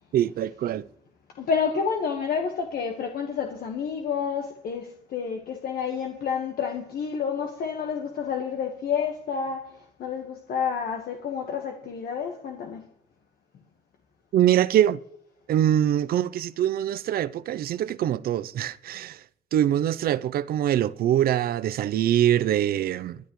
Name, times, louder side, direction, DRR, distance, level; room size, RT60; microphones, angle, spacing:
voice 1, 0.1-0.9 14.3-15.0 15.5-19.2 19.5-23.2, right 11 dB, 65° right, 0.6 m, -23 dB
voice 2, 1.4-12.8, left 6 dB, 65° left, 1.4 m, -29 dB
22.0 x 10.0 x 3.1 m
cardioid pair, 85°, 17 cm